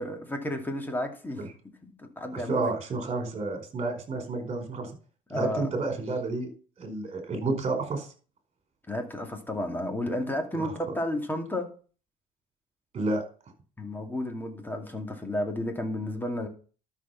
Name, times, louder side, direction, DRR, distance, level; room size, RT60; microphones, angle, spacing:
voice 1, 0.0-1.4 2.2-2.7 5.3-5.7 8.9-11.7 13.8-16.5, left 1 dB, 10° left, 2.5 m, -32 dB
voice 2, 2.3-4.9 5.3-6.5 6.8-8.1 10.5-10.7 12.9-13.2, right 3 dB, 35° right, 4.7 m, -30 dB
12.5 x 6.6 x 5.8 m
cardioid pair, 110°, 17 cm